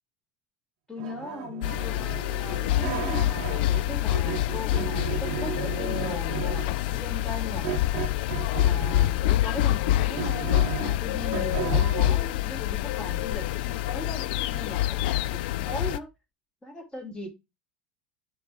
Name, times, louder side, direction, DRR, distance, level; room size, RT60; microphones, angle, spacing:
voice 1, 0.9-7.7 8.5-10.5 10.8-15.0 15.5-16.1 16.6-17.3, left 1 dB, 15° left, 2 dB, 2.6 m, -39 dB
sound 1, 1.0-3.8 4.1-6.8 7.6-9.2 9.7-12.2, right 11 dB, 60° right, 0.7 m, -35 dB
sound 2, 1.6-16.0, left 14 dB, 65° left, 0.3 m, -26 dB
7.0 x 3.1 x 4.9 m, 0.23 s
figure-of-eight pair, 75°, 6 cm